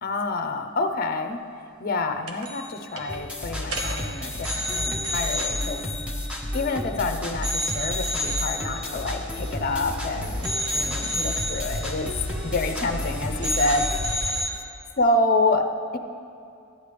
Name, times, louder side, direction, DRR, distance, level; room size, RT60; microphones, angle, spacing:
voice 1, 0.0-1.4 1.8-5.8 6.5-12.1 12.4-13.9 15.0-16.0, left 2 dB, 45° left, 7 dB, 0.6 m, -27 dB
sound 1, 2.3-2.7 3.0-3.2 3.6-7.0 7.4-10.0 10.4-13.1 13.4-14.5, equal, 80° right, 1.1 m, -31 dB
sound 2, 3.1-14.0, left 1 dB, 5° right, 0.7 m, -32 dB
sound 3, 9.4-14.5, equal, 45° right, 0.9 m, -36 dB
13.0 x 9.8 x 3.3 m, 2.5 s
head